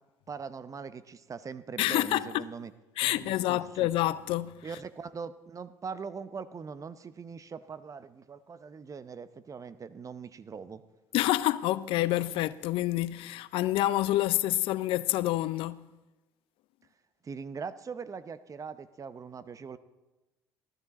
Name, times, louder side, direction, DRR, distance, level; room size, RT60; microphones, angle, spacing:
voice 1, 0.3-2.7 3.0-3.9 4.6-10.8 17.2-19.8, right 5 dB, 35° right, 0.7 m, -41 dB
voice 2, 1.8-2.5 3.0-4.7 11.1-15.9, left 15 dB, 65° left, 0.5 m, -28 dB
14.0 x 12.5 x 4.2 m
hypercardioid pair, 60°, 10 cm